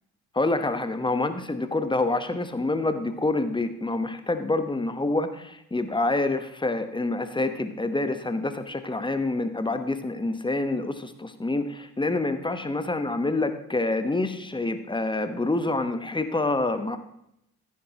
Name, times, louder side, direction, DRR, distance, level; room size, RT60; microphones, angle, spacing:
voice 1, 0.3-17.0, left 2 dB, 10° left, 9 dB, 1.0 m, -27 dB
14.5 x 7.4 x 2.9 m, 0.79 s
figure-of-eight pair, 45°, 44 cm